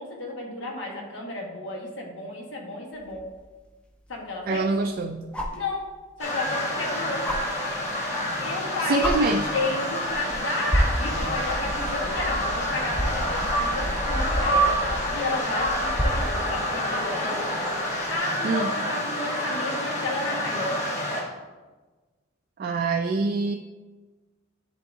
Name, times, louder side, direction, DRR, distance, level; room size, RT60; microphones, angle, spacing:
voice 1, 0.0-3.2 4.1-4.7 5.5-5.9 6.2-7.2 8.4-17.3 18.1-20.8, left 2 dB, 70° left, -1 dB, 1.4 m, -32 dB
sound 1, 3.1-3.2 5.3-5.6 7.2-7.4 8.5-8.6 9.0-9.2 10.1-10.3 10.7-16.4 18.0-18.1, equal, 5° left, 0.6 m, -29 dB
voice 2, 4.5-5.3 8.9-9.4 18.4-18.7 22.6-23.5, right 3 dB, 50° right, 4 dB, 0.3 m, -25 dB
sound 2, 6.2-21.2, equal, 40° left, 1.3 m, -28 dB
10.0 x 3.7 x 2.7 m, 1.3 s
head